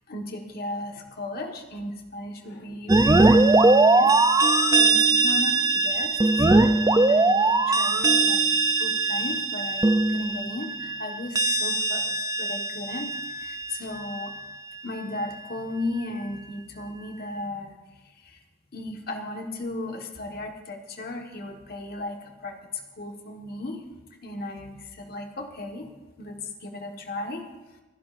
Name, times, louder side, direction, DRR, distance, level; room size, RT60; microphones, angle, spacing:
voice 1, 0.1-4.1 4.7-8.5 8.8-14.4 14.8-17.8 18.2-18.4 18.7-23.9 24.2-25.9 26.2-27.5, left 2 dB, 45° left, 3 dB, 1.5 m, -36 dB
sound 1, 2.9-14.4, right 3 dB, 20° right, 0.4 m, -21 dB
28.5 x 10.5 x 2.6 m, 1.1 s
head